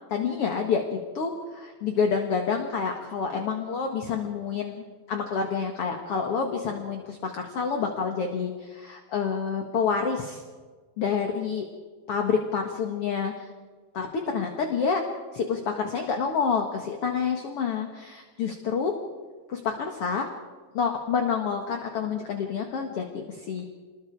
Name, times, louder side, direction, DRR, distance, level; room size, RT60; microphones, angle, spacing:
voice 1, 0.1-0.8 1.1-10.4 11.0-11.7 12.1-13.5 13.9-15.0 15.3-18.9 19.5-20.2 20.7-23.6, left 6 dB, 50° left, 3 dB, 1.9 m, -28 dB
29.0 x 21.0 x 4.8 m, 1.4 s
omnidirectional pair, 4.5 m